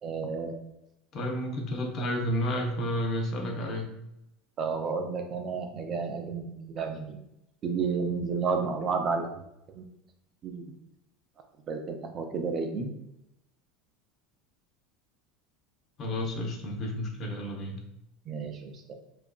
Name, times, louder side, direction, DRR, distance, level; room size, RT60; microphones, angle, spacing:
voice 1, 0.0-0.6 4.6-7.2 7.6-9.3 9.7-9.8 10.4-10.7 11.7-12.9 18.3-18.9, right 5 dB, 35° right, 4 dB, 0.4 m, -31 dB
voice 2, 1.1-3.9 16.0-17.8, left 1 dB, 40° left, 1 dB, 0.6 m, -31 dB
2.8 x 2.4 x 2.2 m, 0.81 s
supercardioid pair, 120°, 0 cm